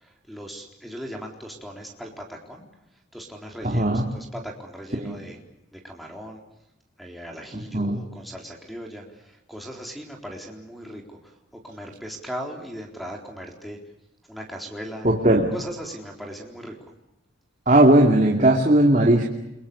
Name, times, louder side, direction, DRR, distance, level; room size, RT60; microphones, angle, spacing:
voice 1, 0.0-2.6 3.1-3.9 4.1-5.4 5.7-6.4 7.0-11.3 11.6-13.8 14.3-15.1 15.5-16.8, equal, ahead, 2 dB, 4.0 m, -38 dB
voice 2, 3.6-4.1 5.0-5.2 7.5-8.0 15.0-15.5 17.7-19.3, right 1 dB, 40° right, 0 dB, 2.7 m, -18 dB
30.0 x 23.5 x 7.1 m, 0.87 s
head